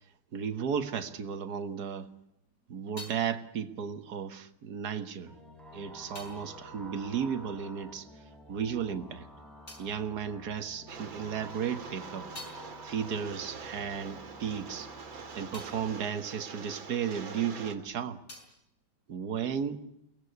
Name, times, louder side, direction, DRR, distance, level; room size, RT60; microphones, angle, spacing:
voice 1, 0.3-2.1 2.7-5.3 5.7-8.1 8.5-9.3 9.8-12.3 12.8-14.9 15.4-18.2 19.1-19.9, right 7 dB, 55° right, 10 dB, 1.9 m, -34 dB
sound 1, 2.3-8.1 8.4-11.1 11.5-17.5 17.8-19.8, left 2 dB, 35° left, 5.9 m, -54 dB
sound 2, 5.3-15.9, equal, ahead, 4.6 m, -49 dB
Rain, 10.9-17.8, right 5 dB, 75° right, 3.0 m, -45 dB
23.0 x 18.5 x 9.4 m, 0.81 s
omnidirectional pair, 2.2 m